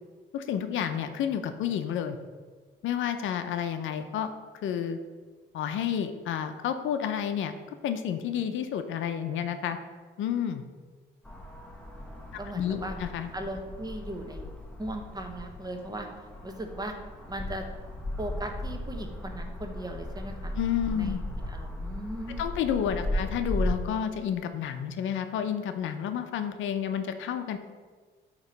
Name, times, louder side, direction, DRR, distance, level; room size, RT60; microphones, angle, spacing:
voice 1, 0.3-2.2 2.8-4.3 4.6-5.0 5.5-7.5 7.8-9.8 10.2-10.6 12.5-13.3 20.5-21.2 22.4-27.6, left 9 dB, 75° left, 9 dB, 0.5 m, -30 dB
sound 1, 11.2-23.7, left 1 dB, 5° left, 0.9 m, -36 dB
voice 2, 12.0-12.9 13.3-14.4 14.8-16.1 16.4-17.0 17.3-17.6 18.2-20.5 20.9-22.4 23.0-23.1, right 1 dB, 20° right, 4 dB, 0.9 m, -38 dB
8.1 x 3.0 x 5.1 m, 1.4 s
cardioid pair, 90°, 20 cm